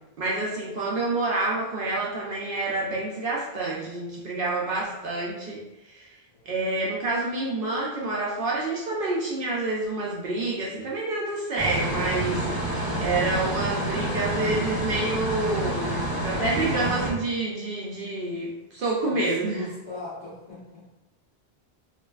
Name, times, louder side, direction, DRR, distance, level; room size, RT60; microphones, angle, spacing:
voice 1, 0.2-6.2 6.5-19.6, right 2 dB, 65° right, -4 dB, 0.7 m, -28 dB
voice 2, 6.3-6.6 19.1-20.9, left 2 dB, 45° left, -13 dB, 1.2 m, -40 dB
sound 1, 11.6-17.1, right 1 dB, 25° right, 0.5 m, -28 dB
3.1 x 2.5 x 2.3 m, 1.0 s
omnidirectional pair, 1.0 m